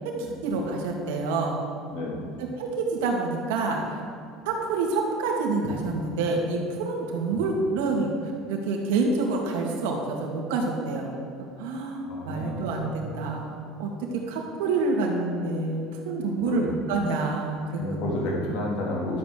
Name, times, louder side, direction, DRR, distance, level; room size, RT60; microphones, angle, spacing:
voice 1, 0.4-1.6 2.4-4.0 4.5-11.1 11.4-18.3, right 3 dB, 90° right, 0 dB, 2.5 m, -28 dB
voice 2, 1.9-2.3 12.1-12.8 16.4-16.8 17.8-19.2, left 1 dB, 55° left, -2 dB, 3.3 m, -31 dB
12.5 x 7.9 x 6.8 m, 2.4 s
cardioid pair, 160°, 0 cm